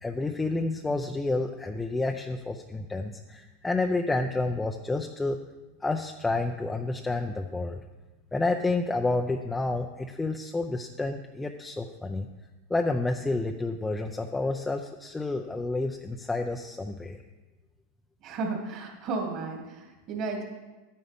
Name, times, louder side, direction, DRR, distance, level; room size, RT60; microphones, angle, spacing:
voice 1, 0.0-5.4 5.8-7.8 8.3-12.3 12.7-17.2, left 2 dB, 10° left, 3 dB, 0.5 m, -29 dB
voice 2, 18.2-20.4, right 3 dB, 50° right, 0 dB, 2.6 m, -33 dB
11.5 x 9.5 x 3.6 m, 1.2 s
hypercardioid pair, 115°, 0 cm